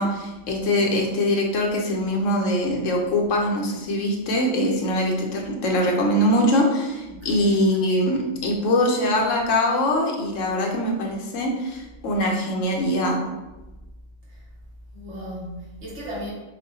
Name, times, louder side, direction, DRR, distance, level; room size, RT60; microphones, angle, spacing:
voice 1, 0.0-13.2, left 1 dB, 85° left, 0 dB, 1.1 m, -22 dB
voice 2, 7.1-7.4 14.3-14.4 14.9-16.3, equal, 65° right, -6 dB, 1.6 m, -36 dB
6.2 x 2.2 x 2.7 m, 1.1 s
omnidirectional pair, 1.3 m